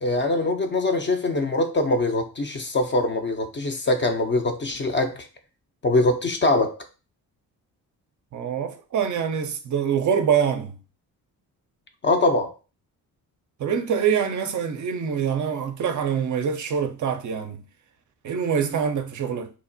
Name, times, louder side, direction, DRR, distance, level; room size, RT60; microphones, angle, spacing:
voice 1, 0.0-5.3 5.8-6.8 12.0-12.5, left 2 dB, 30° left, 0.4 m, -23 dB
voice 2, 8.3-10.8 13.6-17.6 18.2-19.5, right 7 dB, 45° right, 0.5 m, -25 dB
2.9 x 2.0 x 2.5 m
supercardioid pair, 50°, 43 cm